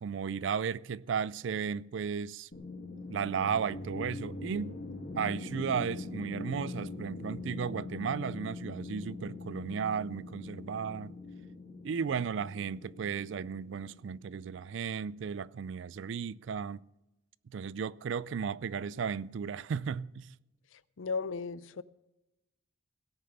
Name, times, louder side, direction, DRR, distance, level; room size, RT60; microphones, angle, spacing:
voice 1, 0.0-2.5 3.1-4.7 5.1-11.2 11.8-16.8 17.5-20.4, right 6 dB, 65° right, 0.4 m, -35 dB
sound 1, 2.5-14.7, left 3 dB, 55° left, 1.9 m, -43 dB
voice 2, 21.0-21.8, left 4 dB, 80° left, 0.5 m, -35 dB
17.5 x 6.7 x 6.7 m
head